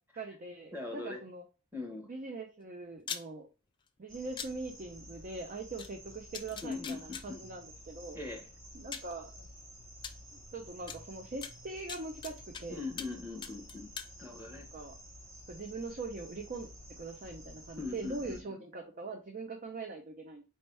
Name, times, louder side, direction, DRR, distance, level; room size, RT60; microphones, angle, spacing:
voice 1, 0.2-1.4 2.1-3.5 4.0-8.2 8.7-9.5 10.3-12.9 14.5-15.0 15.5-16.7 17.0-20.4, right 3 dB, 40° right, 3 dB, 0.5 m, -42 dB
voice 2, 0.7-1.2 1.7-2.1 6.6-7.4 8.1-8.5 12.7-13.9 14.2-14.7 17.8-18.6, left 3 dB, 10° right, 2 dB, 1.1 m, -41 dB
sound 1, 3.0-3.2 4.4-4.5 5.8-5.9 6.3-7.2 8.3-8.4 8.9-9.1 10.0-10.1 10.9-11.0 11.4-12.6 13.0-13.2 13.4-14.1, left 7 dB, 20° left, 0.4 m, -41 dB
sound 2, 4.1-18.4, equal, 60° right, 1.4 m, -52 dB
4.4 x 2.8 x 3.2 m, 0.34 s
head